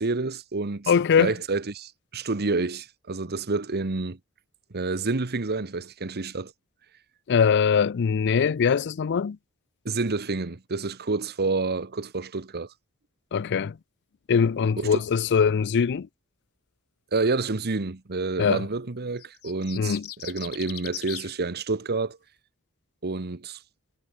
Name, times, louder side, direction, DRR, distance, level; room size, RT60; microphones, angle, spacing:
voice 1, 0.0-0.9 1.2-4.2 4.7-6.5 9.8-12.7 14.8-15.0 17.1-20.0 20.2-22.2 23.0-23.6, right 3 dB, 45° right, 1.1 m, -28 dB
voice 2, 0.9-1.3 7.3-9.4 13.3-13.8 14.3-16.1 18.4-18.6 19.8-20.1, left 6 dB, 50° left, 0.4 m, -22 dB
sound 1, 19.2-21.3, left 14 dB, 85° left, 2.3 m, -39 dB
head